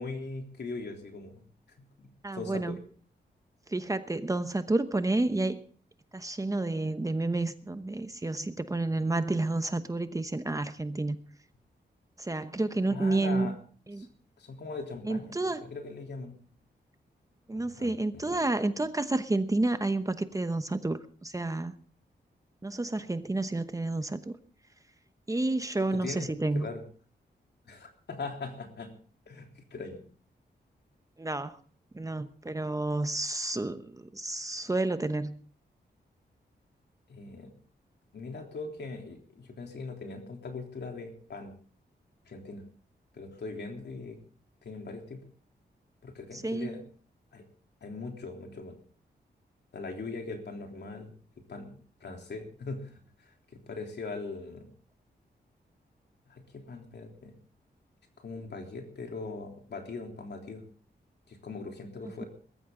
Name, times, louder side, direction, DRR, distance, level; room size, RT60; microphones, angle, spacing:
voice 1, 0.0-1.5 1.8-1.9 2.3-2.8 12.9-13.5 14.0-14.1 14.4-16.3 17.5-18.4 25.9-26.3 26.5-26.8 27.7-28.9 29.3-30.0 37.1-37.5 38.1-41.5 42.3-42.6 43.1-44.2 44.6-45.2 46.0-46.8 47.3-47.5 47.8-48.8 49.7-51.1 51.5-54.7 56.3-57.3 58.2-60.6 61.3-62.3, left 3 dB, 70° left, 3 dB, 3.5 m, -40 dB
voice 2, 2.2-2.8 3.7-5.6 6.1-11.2 12.2-13.5 13.9-14.1 15.0-15.6 17.5-21.7 22.6-24.4 25.3-26.7 31.2-31.6 31.9-35.4 46.3-46.8, right 2 dB, 20° right, 10 dB, 1.0 m, -30 dB
21.0 x 14.0 x 3.8 m, 0.43 s
wide cardioid pair, 110°, 18 cm